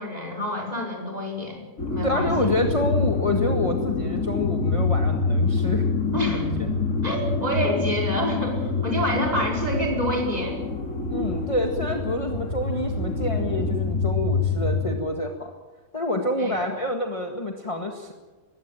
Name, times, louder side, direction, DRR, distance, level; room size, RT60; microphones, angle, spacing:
voice 1, 0.0-2.5 6.1-6.5 7.0-10.6 16.4-16.6, equal, 25° right, 0 dB, 5.2 m, -28 dB
sound 1, 1.8-15.0, left 3 dB, 55° left, 2.9 m, -26 dB
voice 2, 2.0-5.9 6.3-6.5 11.1-15.5 15.9-18.1, left 1 dB, 20° left, 3 dB, 1.8 m, -27 dB
21.0 x 16.0 x 9.1 m, 1.3 s
omnidirectional pair, 1.7 m